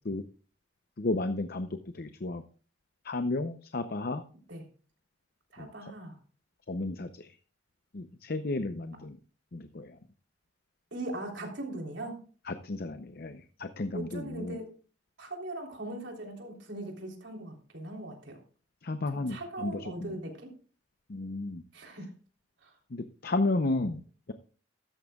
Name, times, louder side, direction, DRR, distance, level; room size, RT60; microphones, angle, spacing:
voice 1, 1.0-1.7 1.9-2.4 3.0-4.2 5.8-5.9 6.7-7.3 7.9-9.2 9.5-9.9 12.5-14.6 18.8-19.8 21.1-21.6 22.9-24.0, left 2 dB, 55° left, 9 dB, 0.7 m, -32 dB
voice 2, 5.5-6.2 10.9-12.2 13.9-14.8 15.2-18.4 19.1-20.5 21.7-22.1 22.6-22.7, right 1 dB, 80° right, 2 dB, 3.5 m, -40 dB
14.5 x 13.5 x 2.3 m, 0.40 s
head